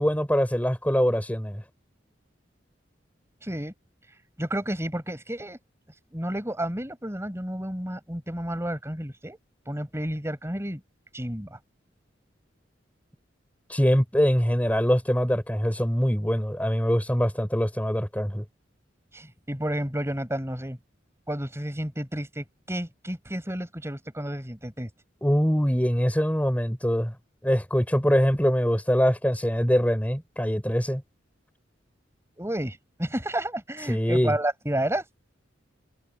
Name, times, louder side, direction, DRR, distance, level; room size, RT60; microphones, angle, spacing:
voice 1, 0.0-1.6 13.7-18.4 25.2-27.1 27.4-31.0 33.9-34.3, equal, 10° left, 5.3 m, -23 dB
voice 2, 3.4-3.7 4.4-5.6 6.1-9.4 9.7-10.8 11.1-11.6 19.1-20.8 21.3-24.9 32.4-35.0, right 1 dB, 15° right, 5.2 m, -31 dB
head